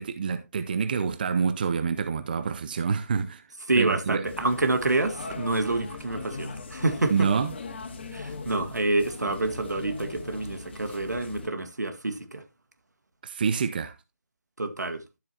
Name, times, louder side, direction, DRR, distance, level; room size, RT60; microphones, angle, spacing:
voice 1, 0.0-3.4 3.8-4.2 7.1-7.5 13.2-14.0, right 6 dB, 30° right, 0.6 m, -27 dB
voice 2, 3.7-7.3 8.1-12.4 14.6-15.0, right 2 dB, 80° right, 1.7 m, -27 dB
sound 1, 4.2-11.5, left 4 dB, 40° left, 1.8 m, -40 dB
12.5 x 7.5 x 2.8 m
figure-of-eight pair, 160°, 9 cm